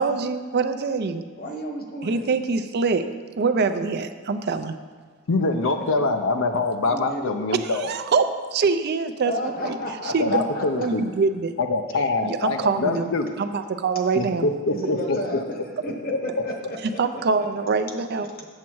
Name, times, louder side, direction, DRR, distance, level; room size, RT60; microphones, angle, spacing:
voice 1, 0.0-1.2 2.0-3.1 3.4-4.7 7.6-9.8 10.0-11.5 12.2-13.1 13.4-14.5 16.8-18.3, right 4 dB, 50° right, 9 dB, 0.4 m, -24 dB
voice 2, 1.4-2.3 6.8-7.3 9.2-10.9 12.9-13.0 14.7-17.7 18.4-18.5, left 1 dB, 45° left, 2 dB, 1.1 m, -33 dB
voice 3, 5.3-7.9 10.2-11.0 11.6-13.3 14.2-15.2, left 3 dB, 65° left, 6 dB, 0.5 m, -24 dB
7.4 x 7.2 x 4.6 m, 1.5 s
head